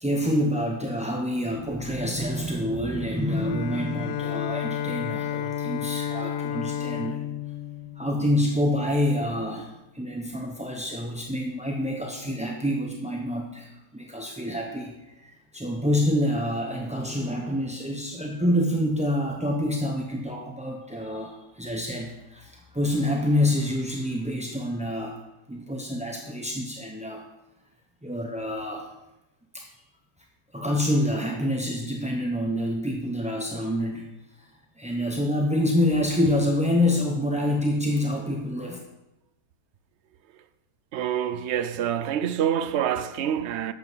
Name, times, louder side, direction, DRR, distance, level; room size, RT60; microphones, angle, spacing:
voice 1, 0.0-7.2 8.0-14.9 15.2-25.2 25.5-27.2 28.0-28.9 29.5-29.6 30.5-34.0 34.8-38.8, left 1 dB, 10° right, 0.5 m, -27 dB
Bowed string instrument, 3.3-8.8, left 9 dB, 70° left, 1.0 m, -32 dB
voice 2, 40.9-43.7, right 9 dB, 75° right, 0.6 m, -26 dB
8.7 x 7.6 x 6.1 m
omnidirectional pair, 1.8 m